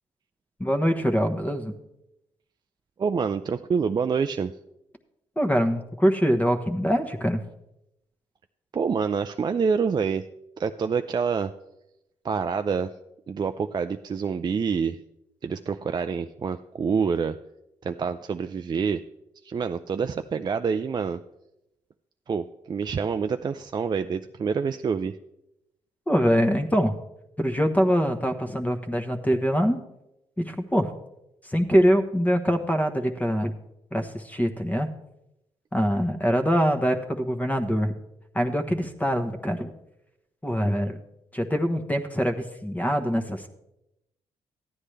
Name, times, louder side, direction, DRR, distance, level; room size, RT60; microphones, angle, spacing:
voice 1, 0.6-1.7 5.4-7.4 26.1-27.0 27.4-29.8 30.4-30.9 31.4-33.5 33.9-34.9 35.7-37.9 38.3-39.7 40.4-41.0 41.3-43.5, equal, 10° left, 6 dB, 1.1 m, -24 dB
voice 2, 3.0-4.5 8.7-10.2 10.6-11.5 12.2-12.9 13.3-15.0 15.4-17.4 17.8-19.0 19.4-21.2 22.3-25.2, right 6 dB, 35° right, 8 dB, 0.4 m, -27 dB
13.0 x 9.8 x 3.3 m, 0.85 s
supercardioid pair, 55°, 12 cm